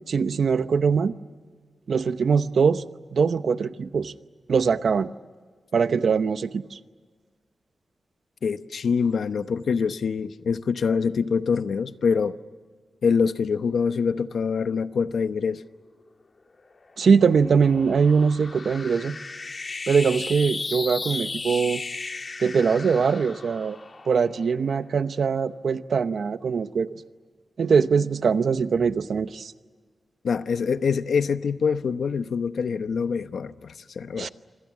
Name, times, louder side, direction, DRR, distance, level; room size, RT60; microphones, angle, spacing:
voice 1, 0.1-1.1 1.9-2.8 3.1-4.1 4.5-5.1 5.7-6.8 17.0-19.2 19.9-21.8 22.4-23.8 24.1-27.0 27.6-29.5 34.2-34.3, right 5 dB, 75° right, 0.8 m, -22 dB
voice 2, 8.4-12.4 13.0-15.6 30.2-34.3, left 5 dB, 80° left, 0.9 m, -25 dB
sound 1, 16.6-25.2, left 3 dB, 40° left, 1.7 m, -36 dB
27.0 x 26.0 x 7.4 m
wide cardioid pair, 130°, 0 cm